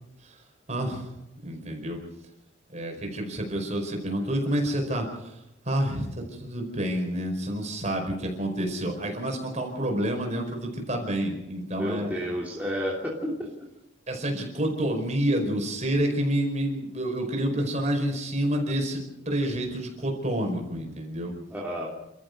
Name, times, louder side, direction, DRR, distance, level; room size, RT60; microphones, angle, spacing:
voice 1, 0.7-1.1 1.4-2.0 2.7-5.4 5.6-6.1 6.4-12.1 14.1-21.3, right 1 dB, 35° right, 3 dB, 4.9 m, -28 dB
voice 2, 11.8-13.7 21.5-21.9, equal, 10° right, -4 dB, 2.8 m, -31 dB
28.5 x 13.5 x 6.6 m, 0.86 s
head